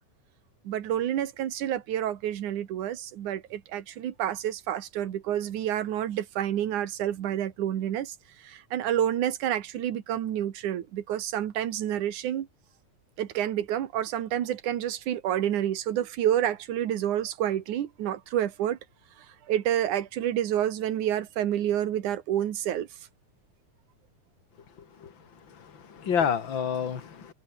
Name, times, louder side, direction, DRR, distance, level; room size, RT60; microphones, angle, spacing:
voice 1, 0.6-8.1 8.4-12.5 13.2-18.8 19.5-22.9, right 11 dB, 75° right, 3.1 m, -29 dB
voice 2, 25.5-27.3, left 7 dB, 40° left, 2.9 m, -29 dB
omnidirectional pair, 3.5 m